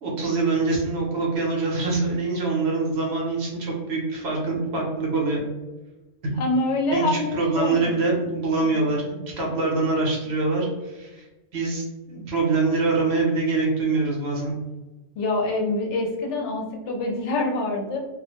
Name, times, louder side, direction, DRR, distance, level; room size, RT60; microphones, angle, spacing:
voice 1, 0.0-5.4 6.9-11.3 11.5-14.5, right 3 dB, 60° right, -2 dB, 0.9 m, -24 dB
voice 2, 6.4-7.9 8.6-8.7 15.2-18.0, left 2 dB, 70° left, 0 dB, 0.9 m, -25 dB
2.4 x 2.1 x 2.9 m, 1.1 s
omnidirectional pair, 1.3 m